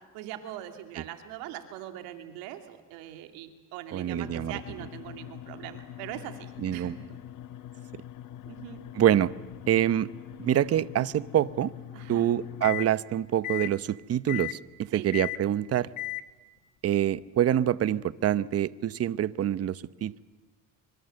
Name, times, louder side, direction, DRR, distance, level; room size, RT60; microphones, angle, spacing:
voice 1, 0.1-7.2 8.5-8.8 11.9-12.3 14.9-15.1, right 12 dB, 90° right, 7 dB, 2.7 m, -42 dB
voice 2, 3.9-4.6 6.6-7.0 8.9-9.3 9.7-10.1 10.4-11.7 12.1-14.6 14.9-15.9 16.8-20.2, right 11 dB, 45° right, 17 dB, 0.9 m, -26 dB
sound 1, 4.1-12.9 13.4-13.8 14.3-14.6 15.1-15.5 16.0-16.3, left 13 dB, 65° left, 1.3 m, -40 dB
25.0 x 24.5 x 7.8 m, 1.2 s
cardioid pair, 100°, 34 cm